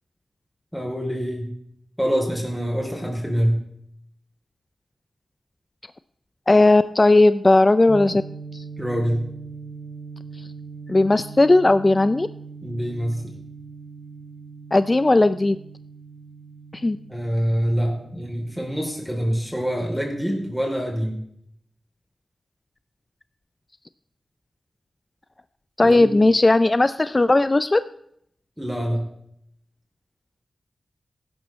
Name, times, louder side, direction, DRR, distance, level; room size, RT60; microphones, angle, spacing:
voice 1, 0.7-1.5 2.0-3.6 8.8-9.2 12.6-13.3 17.1-21.2 25.8-26.1 28.6-29.0, equal, ahead, 0 dB, 3.0 m, -25 dB
voice 2, 6.5-8.2 8.5-8.6 10.9-12.3 14.7-15.6 16.7-17.0 25.8-27.8, left 2 dB, 30° left, 13 dB, 0.4 m, -17 dB
sound 1, 7.9-20.1, right 4 dB, 75° right, 2.0 m, -41 dB
15.5 x 11.5 x 3.1 m, 0.71 s
cardioid pair, 65°, 0 cm